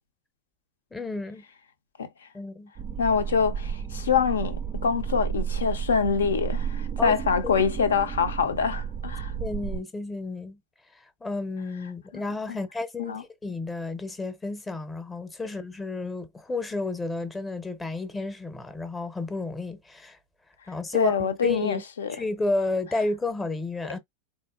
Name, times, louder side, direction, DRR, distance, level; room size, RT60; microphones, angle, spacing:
voice 1, 0.9-1.4 2.3-2.7 7.0-7.7 9.4-10.6 11.2-20.2 20.7-21.8 22.1-24.0, left 3 dB, 10° left, 0.7 m, -32 dB
sound 1, 2.8-9.8, right 7 dB, 35° right, 0.4 m, -32 dB
voice 2, 3.0-9.3 12.5-12.6 13.0-13.2 20.9-22.2, left 6 dB, 65° left, 0.6 m, -25 dB
4.1 x 2.7 x 2.4 m
figure-of-eight pair, 90°, 0 cm